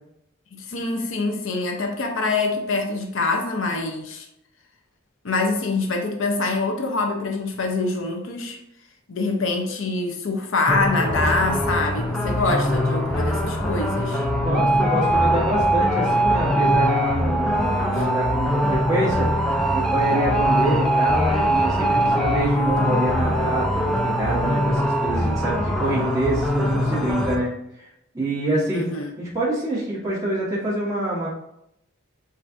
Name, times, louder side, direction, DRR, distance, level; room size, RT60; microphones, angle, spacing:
voice 1, 0.5-4.3 5.2-8.6 9.1-14.3 17.9-18.1 28.7-29.1, left 3 dB, 65° left, 0.6 m, -25 dB
sound 1, 10.7-27.4, equal, ahead, 0.5 m, -22 dB
voice 2, 14.4-19.3 19.7-27.5 27.8-27.9 28.1-28.9 29.2-31.3, right 1 dB, 15° right, 1.4 m, -26 dB
7.5 x 2.5 x 2.6 m
head